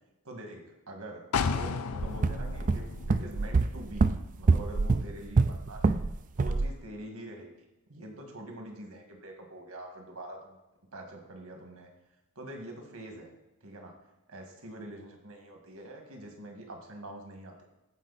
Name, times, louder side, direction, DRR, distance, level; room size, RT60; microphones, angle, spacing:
voice 1, 0.2-4.1 4.4-6.0 6.4-7.5 7.9-10.6 10.9-11.9 12.4-13.3 13.6-13.9 14.3-17.6, right 1 dB, 75° right, 2 dB, 2.0 m, -44 dB
sound 1, 1.3-5.1 5.4-5.5, left 5 dB, 80° left, 0.5 m, -35 dB
sound 2, 2.0-6.1 6.4-6.7, right 3 dB, 35° right, 0.4 m, -26 dB
15.0 x 5.3 x 4.2 m, 0.98 s
head